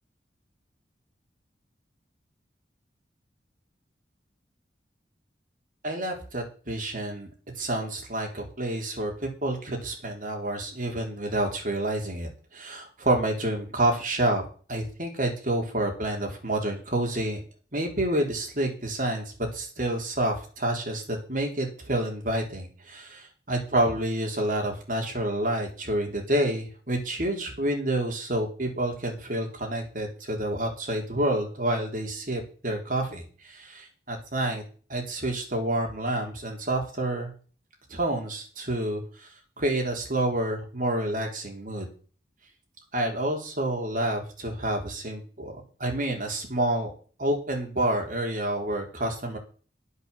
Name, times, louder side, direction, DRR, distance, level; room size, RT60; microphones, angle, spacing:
voice 1, 5.8-7.3 7.6-14.4 14.7-17.4 17.7-34.6 34.9-37.3 37.9-39.3 39.6-41.9 42.9-46.9 47.2-49.4, right 1 dB, 50° right, 1 dB, 3.9 m, -28 dB
10.5 x 8.3 x 7.3 m, 0.40 s
head